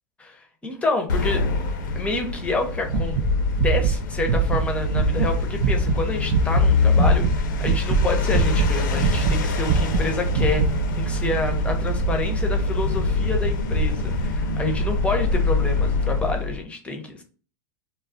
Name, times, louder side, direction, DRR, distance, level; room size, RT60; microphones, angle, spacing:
voice 1, 0.2-1.4 2.0-3.2 3.6-17.2, left 3 dB, 10° left, 4 dB, 0.6 m, -28 dB
sound 1, 1.1-16.6, left 2 dB, 80° left, 0.5 m, -24 dB
sound 2, 2.9-5.3 5.6-6.0 6.3-7.4 7.6-8.7 9.0-10.8, right 5 dB, 60° right, 0.5 m, -22 dB
2.3 x 2.0 x 3.7 m, 0.39 s
supercardioid pair, 125°, 10 cm